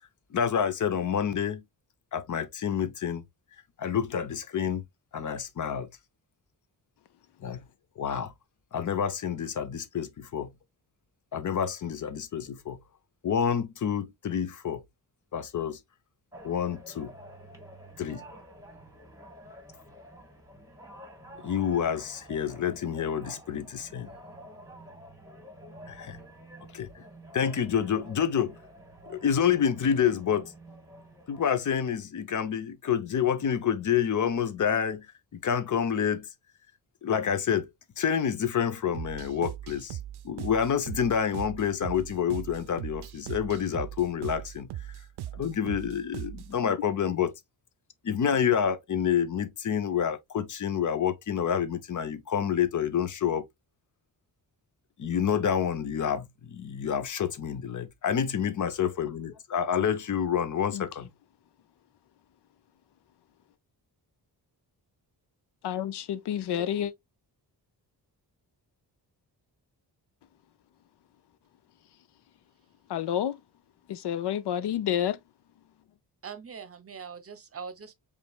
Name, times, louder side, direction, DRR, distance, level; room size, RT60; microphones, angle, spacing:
voice 1, 0.3-1.6 2.1-3.2 3.8-4.8 5.1-5.9 7.4-7.6 8.0-8.3 8.7-10.5 11.3-12.8 13.2-14.8 15.3-15.8 16.4-17.1 18.0-18.2 21.4-24.1 25.9-26.2 26.7-27.0 27.3-28.6 29.1-30.5 31.3-36.3 37.0-37.7 38.0-40.0 40.2-44.9 45.3-47.3 48.0-53.4 55.0-61.1, left 8 dB, 50° left, 0.8 m, -28 dB
sound 1, 16.3-31.5, equal, 10° right, 1.4 m, -49 dB
sound 2, 38.9-46.6, right 12 dB, 80° right, 0.5 m, -39 dB
voice 2, 65.6-66.9 72.9-73.4 73.9-75.2, left 10 dB, 85° left, 0.6 m, -29 dB
voice 3, 76.2-77.9, right 6 dB, 35° right, 0.8 m, -42 dB
5.1 x 3.4 x 2.3 m
wide cardioid pair, 120°, 39 cm